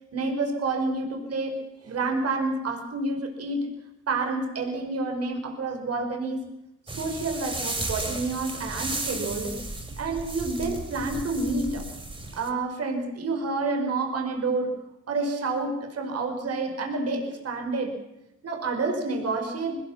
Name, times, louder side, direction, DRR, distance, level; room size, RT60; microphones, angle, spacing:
voice 1, 0.1-3.7 4.1-6.5 6.9-9.6 10.0-11.8 12.3-14.8 15.1-18.0 18.4-19.8, right 3 dB, 55° right, 4 dB, 5.4 m, -29 dB
sound 1, 6.9-12.5, right 2 dB, 20° right, 6.1 m, -34 dB
22.5 x 20.5 x 7.3 m, 0.88 s
cardioid pair, 90°, 30 cm